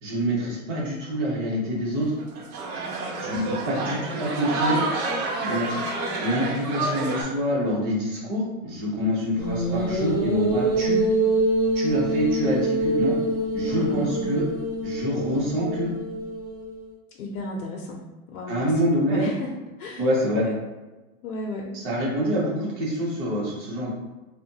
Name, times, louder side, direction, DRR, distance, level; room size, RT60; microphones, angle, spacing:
voice 1, 0.0-2.2 3.2-4.8 5.4-5.8 6.2-11.0 11.7-13.2 13.5-14.5 14.8-15.9 18.5-19.3 20.0-20.4 21.7-23.9, equal, 35° right, -5 dB, 0.9 m, -26 dB
sound 1, 2.0-7.2, right 2 dB, 85° right, 0.8 m, -29 dB
voice 2, 3.8-4.1 13.7-14.3 17.1-18.0 18.3-20.1 20.3-20.5 21.2-21.8, left 1 dB, 80° left, -1 dB, 0.6 m, -34 dB
sound 2, 9.4-16.8, right 1 dB, 10° right, 0.6 m, -25 dB
3.0 x 2.1 x 2.7 m, 1.2 s
supercardioid pair, 170°, 43 cm